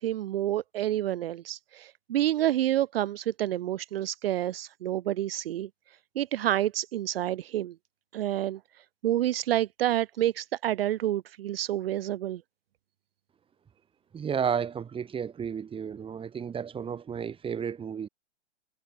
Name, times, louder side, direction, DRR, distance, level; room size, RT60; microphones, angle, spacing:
voice 1, 0.0-5.7 6.2-7.7 8.1-8.6 9.0-12.4, right 13 dB, 60° right, 0.9 m, -28 dB
voice 2, 14.1-18.1, right 7 dB, 15° right, 2.9 m, -32 dB
hypercardioid pair, 115°, 33 cm